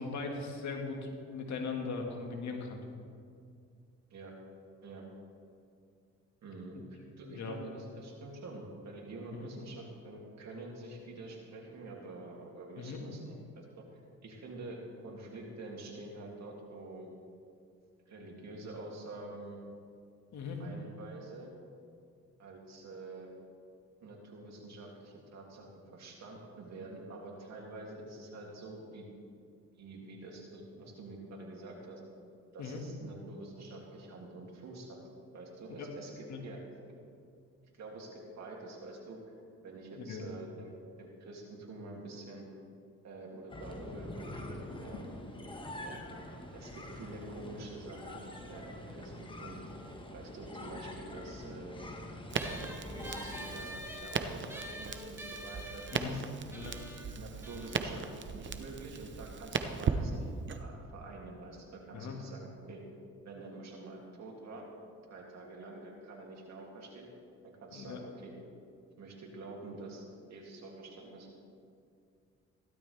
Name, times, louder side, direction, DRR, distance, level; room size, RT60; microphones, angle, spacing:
voice 1, 0.0-2.8 6.7-6.8 7.2-7.6 9.3-9.5 12.8-13.0 20.3-20.6 32.6-32.8 35.8-35.9 36.3-36.4 39.9-40.3 55.9-56.1 56.5-56.8 61.9-62.2 67.7-68.0, left 4 dB, 65° left, 2 dB, 2.0 m, -39 dB
voice 2, 6.4-13.7 14.2-17.1 18.1-19.6 20.6-21.5 22.4-23.3 24.0-29.1 29.8-32.0 32.5-35.0 35.3-36.6 37.7-39.3 39.6-40.7 41.0-42.4 43.0-45.1 45.8-46.0 46.5-49.6 50.1-51.8 52.4-52.6 52.9-56.2 57.1-62.8 63.2-64.7 65.1-67.1 67.4-68.3 69.0-70.0 70.3-71.3, right 2 dB, 60° right, -1 dB, 2.8 m, -47 dB
sound 1, 43.5-53.7, left 1 dB, 15° left, 1.5 m, -45 dB
Crackle, 52.3-60.6, right 6 dB, 40° right, 0.8 m, -38 dB
sound 2, 52.4-59.2, equal, 10° right, 1.7 m, -47 dB
16.5 x 12.0 x 3.5 m, 2.3 s
cardioid pair, 90°, 30 cm